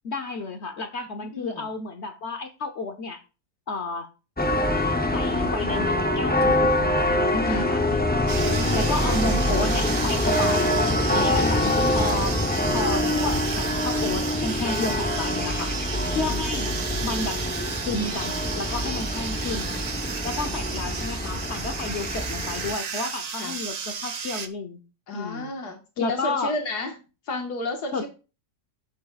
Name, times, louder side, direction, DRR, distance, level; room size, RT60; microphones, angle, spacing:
voice 1, 0.0-3.2 3.7-4.1 5.1-7.8 8.1-8.4 8.7-10.8 11.1-12.4 12.7-15.7 16.1-16.7 17.0-17.5 17.9-19.8 20.2-24.8 25.1-25.5 26.0-26.5 27.9-28.1, left 3 dB, 50° left, 1.0 m, -31 dB
voice 2, 1.2-1.7 7.4-7.7 8.4-8.9 11.1-11.4 16.0-16.4 20.4-21.0 23.4-23.6 25.1-26.9 27.3-28.1, left 2 dB, 90° left, 2.0 m, -33 dB
sound 1, 4.4-22.7, left 1 dB, 10° left, 0.4 m, -25 dB
sound 2, 8.3-24.5, right 6 dB, 75° right, 0.3 m, -33 dB
10.5 x 8.4 x 2.4 m
omnidirectional pair, 1.7 m